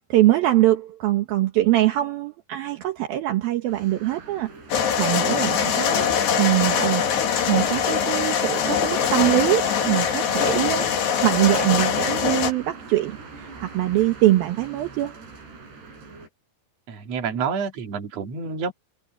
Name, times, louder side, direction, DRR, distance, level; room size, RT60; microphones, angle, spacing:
voice 1, 0.1-6.1 6.4-7.0 7.5-15.1, right 15 dB, 70° right, 2.9 m, -23 dB
sound 1, 3.7-16.3, right 4 dB, 90° right, 9.9 m, -43 dB
sound 2, 4.7-12.5, left 7 dB, 85° left, 4.6 m, -22 dB
voice 2, 16.9-18.7, right 6 dB, 45° right, 3.2 m, -29 dB
omnidirectional pair, 4.7 m